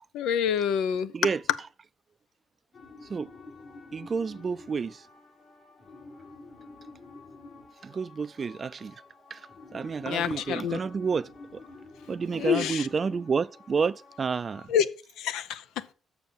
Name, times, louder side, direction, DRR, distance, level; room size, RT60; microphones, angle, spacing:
voice 1, 0.1-1.1 10.1-10.8 12.4-12.9 14.7-14.9 15.2-15.8, left 8 dB, 90° left, 0.6 m, -27 dB
sound 1, 2.7-14.7, left 3 dB, 60° left, 4.2 m, -49 dB
voice 2, 3.9-5.0 7.8-8.9 9.3-11.6 12.1-14.7, right 5 dB, 40° right, 0.4 m, -30 dB
7.0 x 5.6 x 7.4 m
cardioid pair, 90°, 0 cm